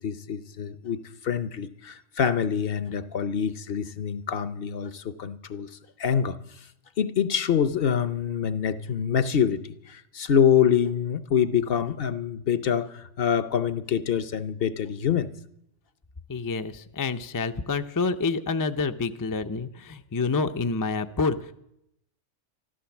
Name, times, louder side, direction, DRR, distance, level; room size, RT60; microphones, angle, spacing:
voice 1, 0.0-6.4 7.0-15.3, left 8 dB, 55° left, 14 dB, 0.9 m, -26 dB
voice 2, 16.3-21.5, left 4 dB, 30° left, 8 dB, 0.4 m, -28 dB
14.0 x 12.5 x 7.1 m, 0.77 s
omnidirectional pair, 1.3 m